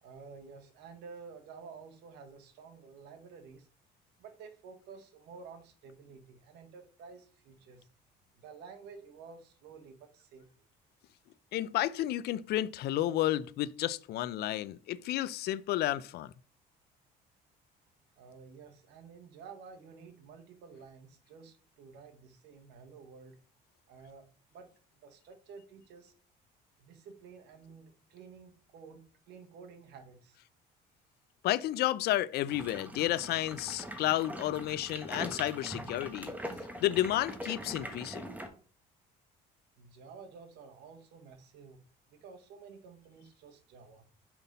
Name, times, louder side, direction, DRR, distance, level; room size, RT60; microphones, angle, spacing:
voice 1, 0.0-3.7 4.2-7.9 8.3-10.5 18.2-23.4 23.9-24.2 24.5-24.7 25.0-26.1 26.8-30.4 39.8-41.8 42.1-44.1, right 5 dB, 80° right, 1.3 m, -51 dB
voice 2, 11.5-16.3 31.4-36.3 36.8-38.3, left 14 dB, 70° left, 0.5 m, -31 dB
sound 1, 32.5-38.5, right 1 dB, 10° right, 1.2 m, -42 dB
5.8 x 5.3 x 4.1 m
cardioid pair, 110°, 17 cm